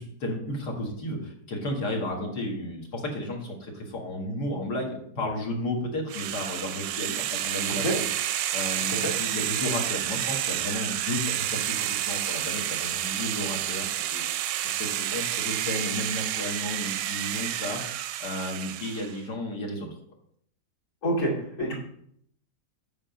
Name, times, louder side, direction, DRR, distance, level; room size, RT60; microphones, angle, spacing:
voice 1, 0.0-8.1 8.5-19.9, left 1 dB, 75° left, 0 dB, 2.4 m, -33 dB
sound 1, 6.1-19.2, right 12 dB, 85° right, 1.2 m, -30 dB
voice 2, 8.8-9.1 21.0-21.3 21.6-21.8, right 1 dB, 45° left, -3 dB, 2.7 m, -27 dB
8.1 x 5.8 x 5.2 m, 0.68 s
omnidirectional pair, 1.8 m